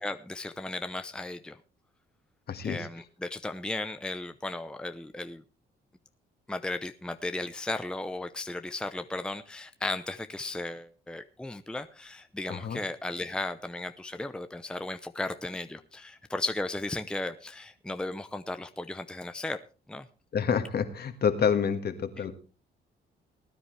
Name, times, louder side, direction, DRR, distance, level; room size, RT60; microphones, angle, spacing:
voice 1, 0.0-1.6 2.6-5.4 6.5-19.6 19.9-20.1 22.2-22.3, left 2 dB, 5° left, 0.7 m, -35 dB
voice 2, 2.5-2.8 12.5-12.8 20.3-22.3, left 7 dB, 55° left, 1.8 m, -28 dB
19.5 x 10.0 x 3.3 m
cardioid pair, 90°, 20 cm